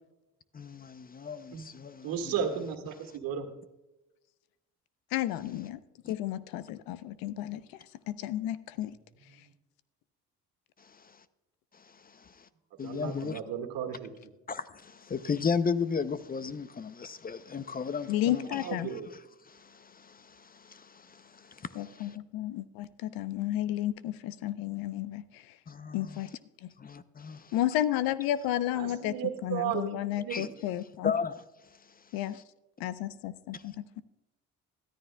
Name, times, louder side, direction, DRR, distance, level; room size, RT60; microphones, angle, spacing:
voice 1, 0.5-2.3 6.0-6.1 12.2-12.3 12.8-13.4 14.5-18.6 18.9-19.0 19.5-22.2 25.7-26.2 26.8-27.5 30.3-30.5 31.0-31.3 33.5-33.6, left 5 dB, 25° left, 0.6 m, -35 dB
voice 2, 2.0-3.5 12.8-14.3 18.6-19.1 28.7-30.5, right 8 dB, 75° right, 1.9 m, -34 dB
voice 3, 5.1-5.8 6.1-7.6 8.1-8.9 18.1-18.9 21.7-25.4 25.9-26.3 26.6-26.7 27.5-29.1 29.4-31.1 32.1-32.4 32.8-34.0, left 13 dB, 80° left, 0.7 m, -32 dB
14.0 x 13.0 x 2.2 m
supercardioid pair, 75°, 35 cm